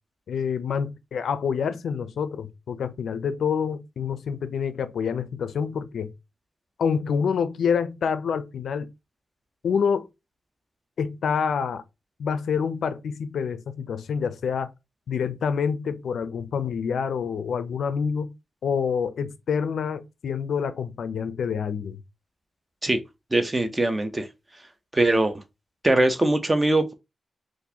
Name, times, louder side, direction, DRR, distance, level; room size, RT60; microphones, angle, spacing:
voice 1, 0.3-6.1 6.8-8.9 9.6-10.1 11.0-11.8 12.2-14.7 15.1-18.3 18.6-22.0, left 6 dB, 80° left, 0.4 m, -27 dB
voice 2, 23.3-24.3 24.9-25.3 25.8-26.9, right 2 dB, 20° right, 0.6 m, -21 dB
3.9 x 2.5 x 2.8 m
cardioid pair, 95°, 0 cm